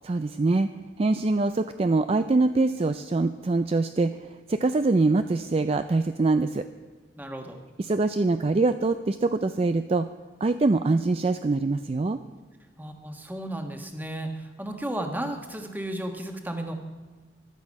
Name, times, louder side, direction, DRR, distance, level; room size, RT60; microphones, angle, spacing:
voice 1, 0.0-0.7 1.0-6.6 7.8-10.1 10.4-12.2, right 3 dB, 35° right, 10 dB, 0.4 m, -24 dB
voice 2, 7.2-7.6 12.8-16.7, right 1 dB, 10° right, 4 dB, 1.3 m, -34 dB
14.5 x 11.5 x 5.3 m, 1.4 s
head